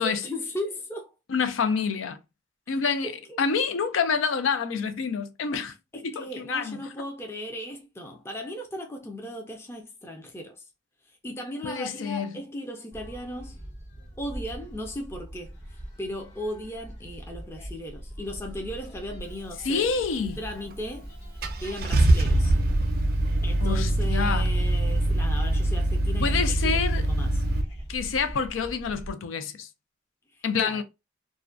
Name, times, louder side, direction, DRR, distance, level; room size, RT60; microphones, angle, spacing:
voice 1, 0.0-1.1 2.7-2.8 3.0-3.4 5.9-10.6 11.2-13.6 14.2-15.6 16.0-19.9 20.4-21.1 21.6-22.5 23.4-27.4 30.6-30.8, equal, 15° left, 0.4 m, -37 dB
voice 2, 1.3-2.2 2.7-3.1 3.4-6.8 11.6-12.3 19.6-20.4 23.6-24.4 26.2-27.0 27.9-29.7 30.4-30.8, left 5 dB, 90° left, 0.4 m, -27 dB
sound 1, 12.9-29.1, equal, 60° left, 1.2 m, -42 dB
Car / Engine starting, 20.7-20.8 21.4-27.6, right 1 dB, 50° right, 0.4 m, -23 dB
2.4 x 2.1 x 2.4 m
head